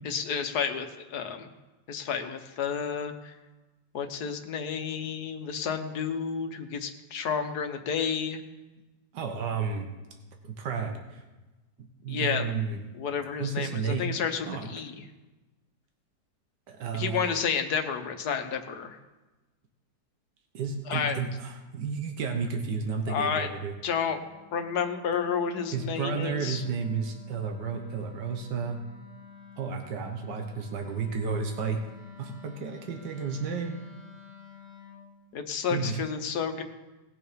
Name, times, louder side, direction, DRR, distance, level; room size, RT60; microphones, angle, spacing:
voice 1, 0.0-1.5 1.9-3.3 3.9-8.4 12.1-12.5 12.9-15.0 16.9-19.0 20.9-21.2 23.1-23.5 23.8-24.2 24.5-26.6 35.3-36.6, left 6 dB, 70° left, 7 dB, 1.6 m, -31 dB
voice 2, 9.1-9.9 10.4-11.2 11.8-12.8 13.4-14.0 14.5-14.7 16.7-17.4 20.5-23.7 25.7-28.8 29.6-31.8 32.2-33.8 35.7-36.0, right 5 dB, 80° right, 3 dB, 1.8 m, -32 dB
Wind instrument woodwind instrument, 22.1-35.1, left 7 dB, 20° right, 3.5 m, -51 dB
19.5 x 6.9 x 5.2 m, 1.1 s
omnidirectional pair, 1.8 m